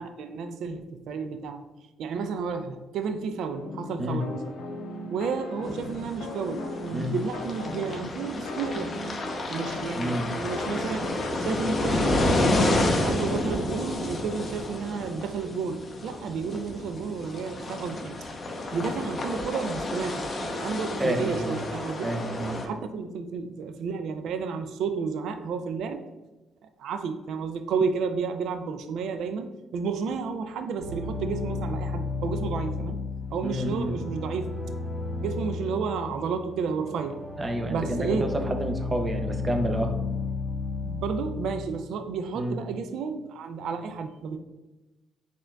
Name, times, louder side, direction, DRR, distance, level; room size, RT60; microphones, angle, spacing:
voice 1, 0.0-1.6 2.0-4.4 5.1-8.9 9.5-18.2 18.7-22.1 22.6-26.0 26.6-33.0 33.3-34.5 35.2-37.2 37.7-38.3 40.8-44.4, right 5 dB, 80° right, 8 dB, 0.3 m, -32 dB
sound 1, 3.6-11.3, left 2 dB, 85° left, 0.6 m, -38 dB
sound 2, 5.6-22.7, left 1 dB, 40° left, 0.7 m, -30 dB
voice 2, 9.9-10.3 21.0-21.5 22.0-22.6 33.4-33.9 37.4-39.9 42.4-42.6, equal, 25° right, 5 dB, 0.6 m, -29 dB
sound 3, 30.8-41.6, left 4 dB, 15° left, 1.2 m, -33 dB
4.4 x 3.6 x 2.3 m, 1.1 s
cardioid pair, 90°, 0 cm